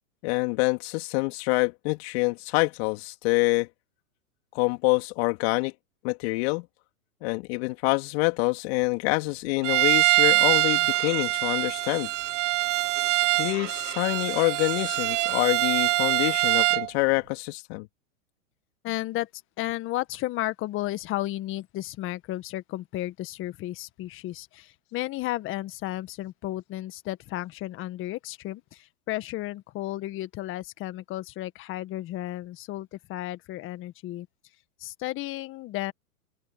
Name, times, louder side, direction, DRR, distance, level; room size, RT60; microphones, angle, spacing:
voice 1, 0.2-3.7 4.5-5.7 6.0-6.7 7.2-12.1 13.4-17.9, left 27 dB, 45° left, 3.5 m, -26 dB
Bowed string instrument, 9.6-16.9, right 19 dB, 55° right, 2.2 m, -24 dB
voice 2, 18.8-19.3 19.6-34.3 34.8-35.9, left 16 dB, 30° left, 1.7 m, -33 dB
open air
hypercardioid pair, 135°, 44 cm